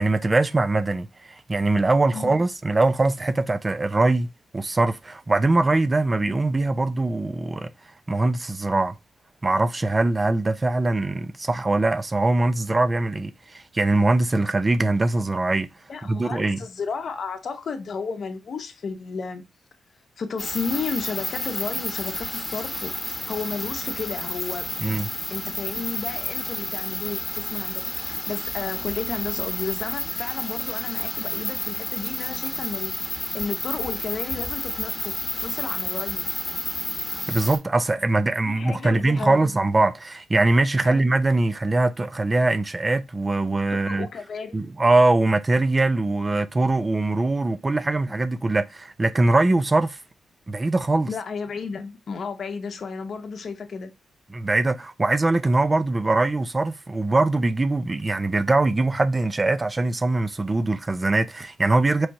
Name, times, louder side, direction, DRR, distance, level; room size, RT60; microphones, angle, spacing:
voice 1, 0.0-4.3 4.5-7.7 8.1-8.9 9.4-15.7 16.0-16.6 24.8-25.1 37.3-44.1 44.5-50.0 50.5-51.1 54.3-62.1, right 2 dB, 30° right, 0.4 m, -22 dB
voice 2, 15.9-19.4 20.2-24.9 25.3-36.3 38.4-39.5 40.8-41.1 43.8-44.7 51.1-53.9, left 5 dB, 60° left, 0.8 m, -33 dB
sound 1, 20.4-37.6, left 2 dB, 20° left, 1.1 m, -31 dB
4.3 x 3.1 x 2.6 m
cardioid pair, 75°, 0 cm